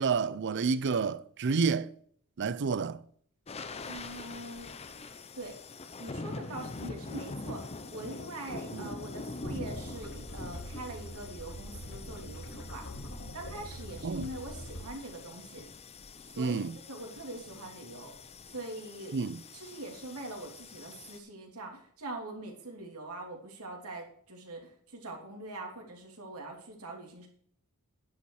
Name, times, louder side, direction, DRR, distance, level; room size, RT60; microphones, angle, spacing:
voice 1, 0.0-1.9 2.4-3.0 8.7-8.9 14.0-14.2 16.4-16.8 19.1-19.4, right 5 dB, 55° right, 0.5 m, -29 dB
sound 1, 3.5-21.2, left 3 dB, 30° left, 0.7 m, -44 dB
voice 2, 3.8-4.7 5.3-5.6 6.0-12.9 13.3-15.6 16.3-18.2 18.5-19.2 19.5-27.3, right 2 dB, 85° right, 3.1 m, -43 dB
sound 2, 9.4-14.8, equal, 60° left, 4.6 m, -44 dB
10.5 x 8.5 x 4.8 m
head